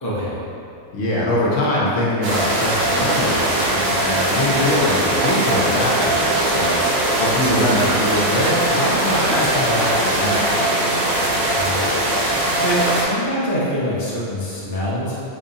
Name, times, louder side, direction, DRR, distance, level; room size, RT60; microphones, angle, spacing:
voice 1, 0.0-0.4 11.5-15.1, equal, 15° left, -8 dB, 0.7 m, -25 dB
voice 2, 0.9-6.8 7.2-10.4, left 1 dB, 65° left, -6 dB, 1.2 m, -22 dB
sound 1, 2.2-13.0, right 1 dB, 80° right, 1.2 m, -20 dB
4.5 x 2.7 x 4.1 m, 2.4 s
omnidirectional pair, 1.5 m